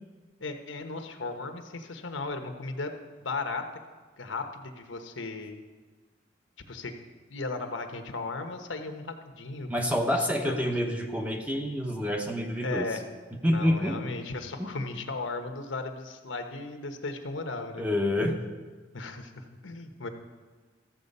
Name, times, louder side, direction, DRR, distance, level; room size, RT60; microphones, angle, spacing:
voice 1, 0.4-2.9 3.2-3.6 4.2-5.6 6.7-6.9 7.3-9.7 10.2-10.7 12.6-13.0 13.4-17.8 18.9-20.1, left 3 dB, 80° left, 6 dB, 1.1 m, -36 dB
voice 2, 9.7-12.9 13.4-14.0 14.6-14.8 17.8-18.4, left 1 dB, 5° right, 3 dB, 0.9 m, -27 dB
14.0 x 7.6 x 5.4 m, 1.4 s
head